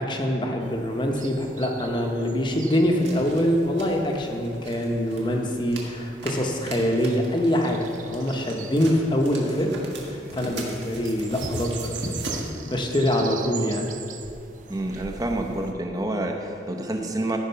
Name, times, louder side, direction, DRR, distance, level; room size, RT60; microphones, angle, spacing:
voice 1, 0.0-9.7 10.1-13.9, equal, 25° left, 2 dB, 1.0 m, -24 dB
sound 1, 0.6-15.7, right 6 dB, 45° right, 0.6 m, -43 dB
sound 2, 3.0-12.5, right 1 dB, 85° right, 1.8 m, -39 dB
voice 2, 14.7-17.4, right 1 dB, 20° right, 3 dB, 0.8 m, -28 dB
15.0 x 5.2 x 5.7 m, 2.7 s
head